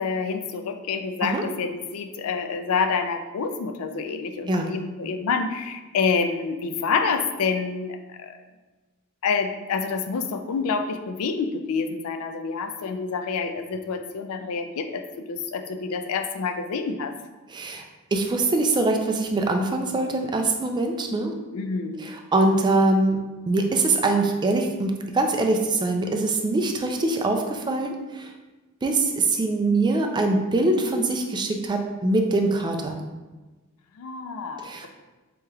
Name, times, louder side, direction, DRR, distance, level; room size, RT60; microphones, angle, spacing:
voice 1, 0.0-8.3 9.2-15.0 15.3-17.1 21.5-22.1 34.0-34.7, left 5 dB, 75° left, 8 dB, 0.4 m, -27 dB
voice 2, 17.5-17.8 18.1-21.3 22.0-28.3 28.8-33.0 34.6-34.9, right 2 dB, 20° right, 3 dB, 0.3 m, -23 dB
4.7 x 2.9 x 2.3 m, 1.2 s
head